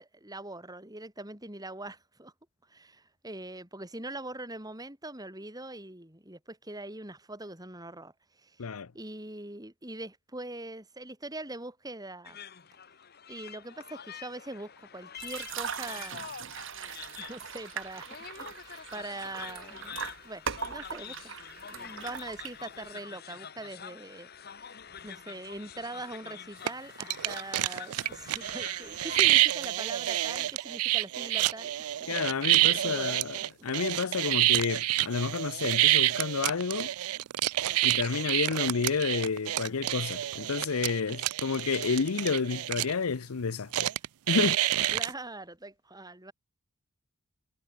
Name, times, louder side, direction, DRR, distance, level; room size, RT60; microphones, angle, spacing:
voice 1, 0.0-2.3 2.7-8.6 8.9-12.4 13.3-16.3 16.8-20.0 20.2-21.3 21.7-24.7 25.0-31.7 32.0-32.2 32.5-33.2 34.0-34.3 40.0-40.1 44.4-44.5 44.9-46.3, right 2 dB, 15° right, 5.2 m, -42 dB
voice 2, 8.6-8.9 32.1-36.9 37.8-43.9 44.3-44.6, left 5 dB, 80° left, 0.7 m, -30 dB
sound 1, 12.2-29.2, left 7 dB, 45° left, 1.5 m, -46 dB
sound 2, 15.2-22.9, right 7 dB, 60° right, 1.7 m, -40 dB
sound 3, 26.7-26.8 27.0-42.9 43.7-45.1, right 16 dB, 90° right, 0.4 m, -28 dB
head